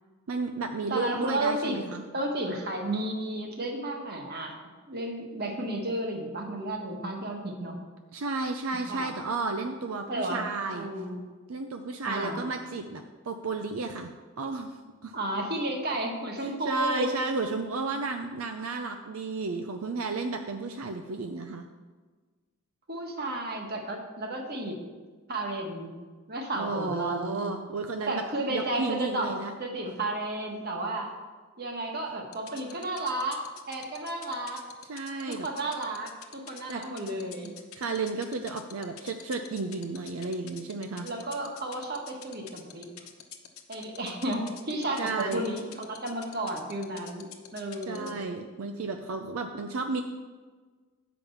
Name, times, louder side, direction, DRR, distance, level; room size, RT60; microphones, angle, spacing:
voice 1, 0.3-2.0 8.1-10.9 11.5-15.1 16.4-21.7 26.6-28.2 28.5-29.5 34.9-35.5 36.7-36.8 37.8-41.1 45.0-45.4 47.9-50.0, right 3 dB, 80° right, 5 dB, 0.5 m, -33 dB
voice 2, 0.9-1.8 2.1-4.6 4.9-7.8 8.9-9.1 10.1-10.4 10.7-11.2 12.1-12.4 15.1-17.1 22.9-24.8 25.3-25.9 26.3-27.4 28.1-29.3 29.6-31.1 31.6-33.4 33.7-34.6 35.3-37.5 41.0-42.9 43.7-45.6 45.9-48.2, right 1 dB, 50° right, 2 dB, 1.5 m, -32 dB
sound 1, 32.3-48.2, left 11 dB, 85° left, 0.9 m, -45 dB
9.0 x 5.2 x 7.1 m, 1.4 s
head